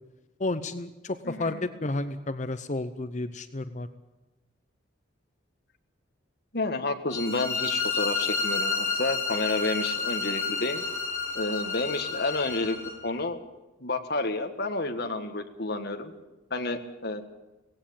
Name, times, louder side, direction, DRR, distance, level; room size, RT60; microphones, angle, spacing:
voice 1, 0.4-3.9, left 2 dB, 35° left, 11 dB, 0.8 m, -31 dB
voice 2, 1.2-1.7 6.5-10.8 11.3-12.8 13.0-13.4 13.8-16.1 16.5-17.2, left 2 dB, 55° left, 6 dB, 1.7 m, -30 dB
sound 1, 7.1-12.9, left 4 dB, 15° left, 7.3 m, -30 dB
18.0 x 16.5 x 8.8 m, 1.0 s
head